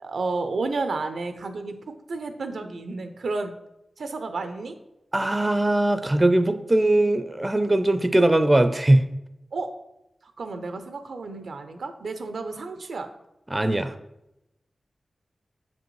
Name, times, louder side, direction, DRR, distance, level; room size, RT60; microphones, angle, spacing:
voice 1, 0.0-3.5 4.0-4.8 9.5-9.7 10.2-13.1, right 3 dB, 85° right, 8 dB, 0.5 m, -31 dB
voice 2, 5.1-9.1 13.5-13.9, right 1 dB, 25° right, 10 dB, 0.5 m, -20 dB
7.2 x 5.2 x 3.1 m, 0.87 s
cardioid pair, 60°, 0 cm